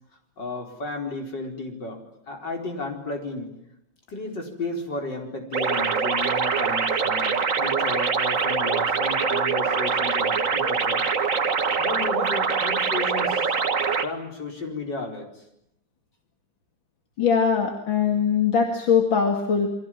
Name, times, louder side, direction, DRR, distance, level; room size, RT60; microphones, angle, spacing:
voice 1, 0.4-3.5 4.1-11.0 11.8-13.6 14.0-15.3, left 2 dB, 65° left, 3 dB, 5.2 m, -33 dB
sound 1, 5.5-14.1, right 5 dB, 45° right, 1.8 m, -24 dB
voice 2, 17.2-19.7, left 6 dB, 80° left, 4 dB, 3.1 m, -21 dB
29.0 x 22.5 x 7.5 m, 0.80 s
omnidirectional pair, 2.1 m